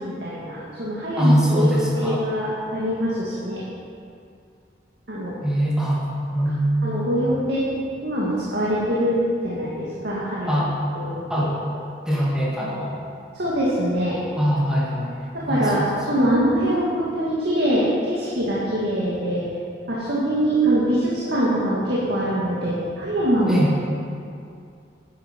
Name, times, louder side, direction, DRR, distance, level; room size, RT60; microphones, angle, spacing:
voice 1, 0.0-3.6 5.1-5.3 6.8-7.6 8.0-10.6 11.0-11.5 13.3-14.2 15.3-19.4 19.9-23.8, right 1 dB, 65° right, -7 dB, 2.2 m, -23 dB
voice 2, 1.2-2.3 5.4-7.0 10.5-10.7 11.3-11.5 12.1-13.0 14.4-15.9 23.5-23.7, equal, 5° right, -6 dB, 2.4 m, -22 dB
10.5 x 10.0 x 5.3 m, 2.4 s
head